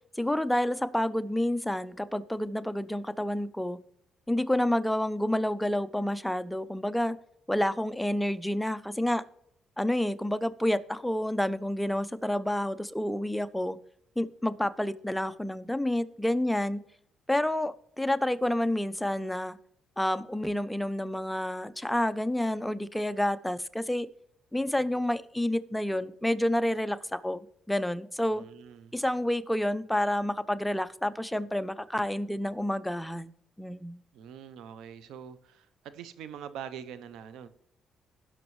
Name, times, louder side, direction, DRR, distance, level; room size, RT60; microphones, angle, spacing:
voice 1, 0.2-3.8 4.3-7.2 7.5-9.2 9.8-13.8 14.2-16.8 17.3-19.6 20.0-24.1 24.5-28.4 28.9-33.3 33.6-34.0, left 1 dB, 5° left, 13 dB, 0.5 m, -29 dB
voice 2, 28.3-28.9 34.1-37.5, right 8 dB, 85° right, 14 dB, 0.6 m, -44 dB
16.5 x 6.1 x 3.1 m, 0.70 s
cardioid pair, 90°, 0 cm